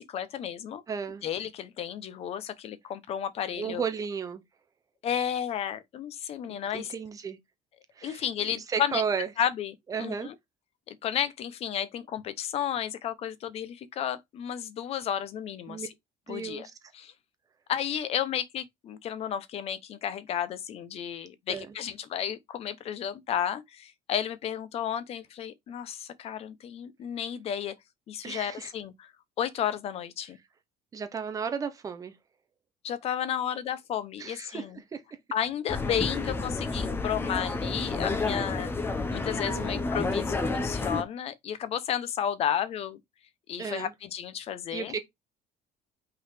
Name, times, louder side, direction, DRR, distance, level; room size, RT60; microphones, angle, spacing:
voice 1, 0.0-0.8 1.2-3.8 5.0-6.9 8.0-9.0 9.4-10.3 10.9-15.9 16.3-16.7 16.9-17.1 17.7-27.7 28.1-29.1 29.4-30.4 32.8-34.8 35.3-38.7 39.1-43.0 43.5-44.9, left 9 dB, 40° left, 0.8 m, -32 dB
voice 2, 0.9-1.2 3.5-4.4 6.5-7.4 8.0-9.3 9.9-10.3 15.7-15.9 16.3-16.7 21.5-21.7 28.2-28.7 30.9-32.1 34.2-35.0 39.5-39.8 43.6-43.9 44.7-45.0, right 6 dB, 20° right, 1.0 m, -34 dB
sound 1, 35.7-41.0, left 3 dB, 15° left, 0.9 m, -30 dB
5.8 x 4.0 x 4.9 m
cardioid pair, 170°, 15 cm